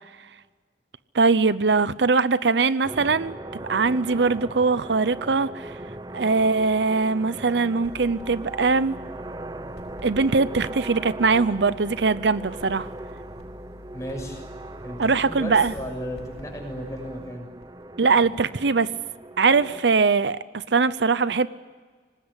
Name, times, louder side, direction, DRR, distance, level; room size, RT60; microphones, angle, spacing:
voice 1, 1.1-5.7 6.1-8.9 10.0-12.9 15.0-15.7 18.0-18.9 19.4-21.5, right 4 dB, 75° right, 0.7 m, -21 dB
sound 1, 2.8-19.8, right 2 dB, 20° right, 0.7 m, -39 dB
sound 2, 7.8-18.1, left 1 dB, 75° left, 6.0 m, -46 dB
voice 2, 13.9-14.4 14.8-17.5, equal, 20° left, 6.4 m, -34 dB
25.0 x 19.5 x 9.8 m
head